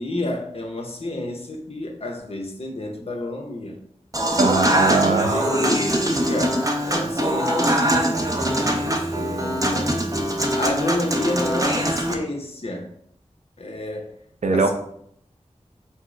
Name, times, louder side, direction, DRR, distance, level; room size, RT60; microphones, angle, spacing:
voice 1, 0.0-3.8 4.4-4.7 5.3-8.1 8.6-12.9 13.6-14.1 14.5-14.7, left 1 dB, 55° left, 0.8 m, -30 dB
Human voice / Acoustic guitar / Piano, 4.1-12.1, right 1 dB, 30° right, 0.6 m, -22 dB
voice 2, 4.4-5.3 14.4-14.7, right 3 dB, 85° right, 0.5 m, -20 dB
4.4 x 2.0 x 4.6 m
wide cardioid pair, 60°, 12 cm